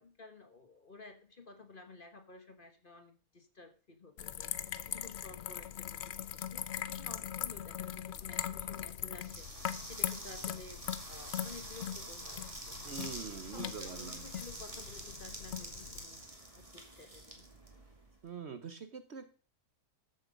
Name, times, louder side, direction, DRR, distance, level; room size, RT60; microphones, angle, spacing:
voice 1, 0.0-6.0 6.3-13.0 13.3-16.3 16.5-17.4, left 3 dB, 35° left, 7 dB, 1.3 m, -53 dB
sound 1, 4.2-16.1, left 10 dB, 60° left, 0.8 m, -41 dB
sound 2, 9.2-18.2, right 1 dB, 20° right, 2.4 m, -47 dB
voice 2, 12.8-14.2 18.2-19.3, right 6 dB, 50° right, 10 dB, 1.0 m, -44 dB
13.5 x 7.4 x 5.1 m, 0.36 s
omnidirectional pair, 1.6 m